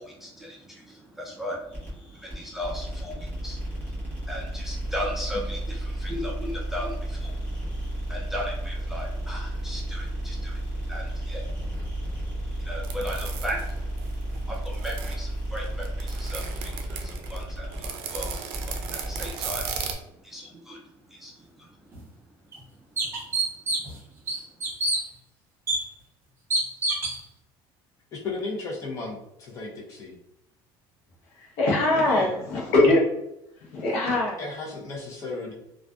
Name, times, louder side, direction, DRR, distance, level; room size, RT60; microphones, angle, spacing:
voice 1, 0.0-12.1 12.6-13.7 14.4-22.0, equal, 5° right, -3 dB, 0.3 m, -37 dB
sound 1, 1.7-19.9, right 1 dB, 20° left, 1.0 m, -33 dB
sound 2, 12.8-15.2 15.6-19.9, right 7 dB, 75° right, 0.4 m, -36 dB
sound 3, 21.9-22.0 22.5-22.6 23.0-24.0 24.3-25.0 25.7-25.8 26.5-27.2, right 2 dB, 25° right, 0.7 m, -26 dB
voice 2, 28.1-30.2 31.9-32.4 34.4-35.5, left 3 dB, 35° left, -2 dB, 0.6 m, -34 dB
voice 3, 31.4-33.0 33.6-34.4, left 2 dB, 75° left, -1 dB, 0.8 m, -22 dB
2.5 x 2.4 x 2.3 m, 0.83 s
cardioid pair, 165°, 10 cm